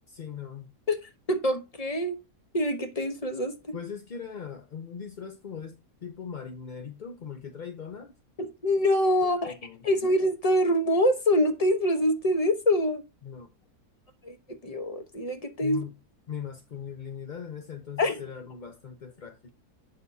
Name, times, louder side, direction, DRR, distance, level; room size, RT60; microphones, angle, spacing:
voice 1, 0.1-0.7 3.7-8.1 9.2-9.8 13.2-13.5 15.6-16.0 16.3-19.5, left 7 dB, 45° left, 0.6 m, -40 dB
voice 2, 1.3-2.2 2.5-3.7 8.4-9.5 9.8-13.0 14.2-15.8 18.0-18.2, left 1 dB, 25° left, 1.0 m, -25 dB
8.5 x 6.5 x 2.7 m
omnidirectional pair, 1.6 m